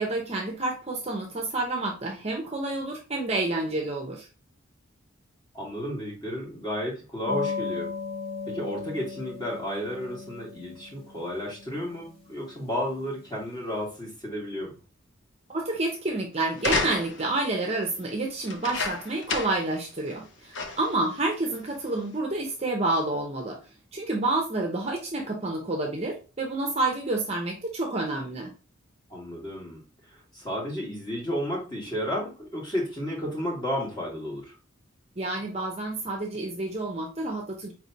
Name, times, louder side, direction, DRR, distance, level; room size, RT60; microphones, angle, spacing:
voice 1, 0.0-4.3 15.5-23.6 23.9-28.5 35.2-37.7, right 2 dB, 30° right, 0 dB, 0.7 m, -29 dB
voice 2, 5.5-7.9 8.4-14.7 29.1-29.8 30.1-34.5, equal, 20° left, -2 dB, 1.7 m, -32 dB
sound 1, 7.3-13.5, left 4 dB, 45° left, 2.0 m, -37 dB
sound 2, 16.6-17.4 18.4-19.7 20.1-20.2 20.5-21.0 21.7-21.8, left 3 dB, 65° left, 0.7 m, -30 dB
4.5 x 3.2 x 2.7 m, 0.33 s
head